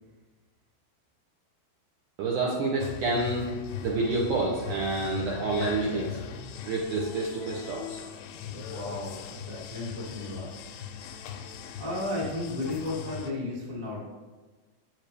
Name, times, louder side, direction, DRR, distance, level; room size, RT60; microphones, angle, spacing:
voice 1, 2.2-3.5 3.8-6.2 6.6-8.0, right 3 dB, 75° right, -3 dB, 1.8 m, -28 dB
sound 1, 2.8-13.3, left 7 dB, 85° left, 2.6 m, -39 dB
voice 2, 8.5-10.6 10.9-11.3 11.8-14.0, left 2 dB, 15° right, -6 dB, 0.6 m, -34 dB
7.5 x 7.4 x 3.3 m, 1.3 s
omnidirectional pair, 4.5 m